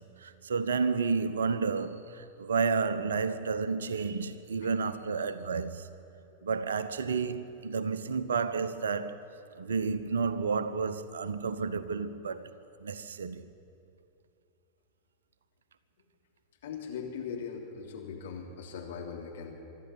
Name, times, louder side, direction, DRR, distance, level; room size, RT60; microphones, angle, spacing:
voice 1, 0.0-5.9 6.4-9.2 9.6-12.5 12.8-13.5, right 5 dB, 65° right, 1.0 m, -31 dB
voice 2, 16.6-19.5, left 6 dB, 60° left, 3.3 m, -40 dB
25.0 x 12.0 x 9.9 m
figure-of-eight pair, 90°, 0 cm